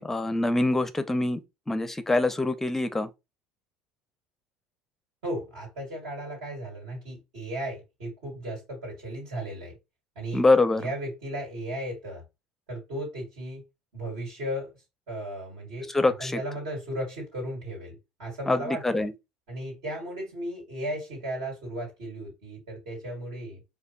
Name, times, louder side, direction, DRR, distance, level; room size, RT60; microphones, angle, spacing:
voice 1, 0.0-1.4 1.7-3.1 10.3-10.8 15.9-16.4 18.5-19.1, left 2 dB, 10° left, 0.5 m, -24 dB
voice 2, 5.2-9.7 10.2-10.4 10.8-12.2 12.7-13.6 13.9-14.7 15.1-19.1 19.5-23.6, right 1 dB, 65° right, 2.0 m, -35 dB
4.9 x 2.2 x 2.9 m
figure-of-eight pair, 65°, 3 cm